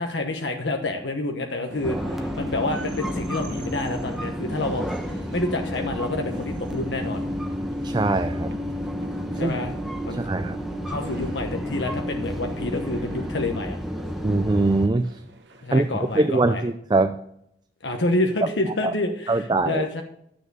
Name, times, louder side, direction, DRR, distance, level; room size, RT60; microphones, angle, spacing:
voice 1, 0.0-7.2 9.3-9.7 10.0-10.3 10.9-13.8 15.6-16.6 17.8-20.0, left 2 dB, 85° left, 4 dB, 1.1 m, -28 dB
sound 1, 1.7-16.6, right 2 dB, 80° right, 1.2 m, -46 dB
sound 2, 1.8-14.9, equal, ahead, 1.0 m, -31 dB
voice 2, 7.8-8.5 9.4-9.5 10.1-10.6 14.2-15.2 15.7-15.9 16.1-17.2 18.8-18.9 19.3-19.8, right 2 dB, 25° right, 9 dB, 0.4 m, -22 dB
12.0 x 6.9 x 6.8 m, 0.74 s
head